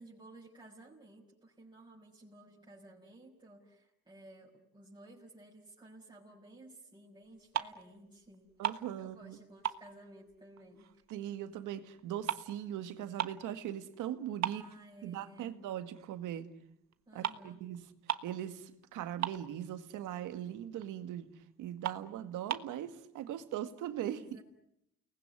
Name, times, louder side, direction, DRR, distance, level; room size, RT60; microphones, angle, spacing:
voice 1, 0.0-8.5 9.0-11.0 14.4-15.6 17.1-17.6 24.0-24.4, right 1 dB, 15° right, 6.1 m, -55 dB
sound 1, 7.3-8.0 8.3-9.4 9.6-11.2 11.5-13.5 13.9-14.0 14.4-15.5 15.9-16.1 16.9-17.0 17.2-17.5 17.7-17.8 18.0-18.4 18.7-18.8 19.0-19.9 20.3-20.4 20.8-20.9 21.3-21.4 21.8-22.8, right 10 dB, 60° right, 1.4 m, -38 dB
voice 2, 8.6-9.4 11.1-14.6 15.0-16.5 17.1-17.8 18.2-21.3 21.6-24.2, right 11 dB, 90° right, 1.9 m, -40 dB
29.5 x 20.0 x 9.9 m
cardioid pair, 90°, 30 cm